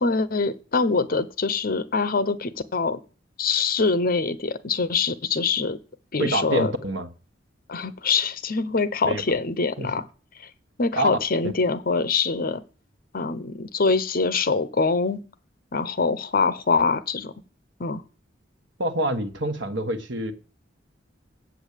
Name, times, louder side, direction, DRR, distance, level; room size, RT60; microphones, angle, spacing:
voice 1, 0.0-3.0 3.4-5.8 6.1-6.7 7.7-10.0 10.8-12.6 13.1-15.2 15.7-17.3 17.8-18.0, left 4 dB, 50° left, 0.8 m, -24 dB
voice 2, 6.2-7.1 9.0-9.2 9.8-9.9 10.9-11.1 18.8-20.3, right 1 dB, 80° right, 1.4 m, -26 dB
8.0 x 7.1 x 8.3 m
head